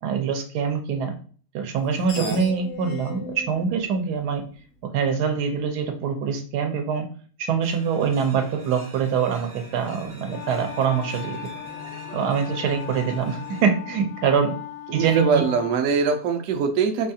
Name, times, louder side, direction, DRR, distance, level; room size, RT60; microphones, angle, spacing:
voice 1, 0.0-1.1 1.5-4.4 4.8-7.0 7.5-11.4 12.1-14.5 14.9-15.4, right 6 dB, 90° right, 5 dB, 1.2 m, -24 dB
Screech, 1.7-5.0, left 5 dB, 70° left, 0.7 m, -39 dB
sound 1, 7.6-13.7, right 1 dB, 45° right, 0.7 m, -44 dB
sound 2, 10.3-15.8, left 12 dB, 90° left, 1.1 m, -38 dB
voice 2, 14.9-17.1, right 5 dB, 70° right, 5 dB, 0.9 m, -22 dB
4.8 x 2.3 x 2.7 m, 0.42 s
omnidirectional pair, 1.7 m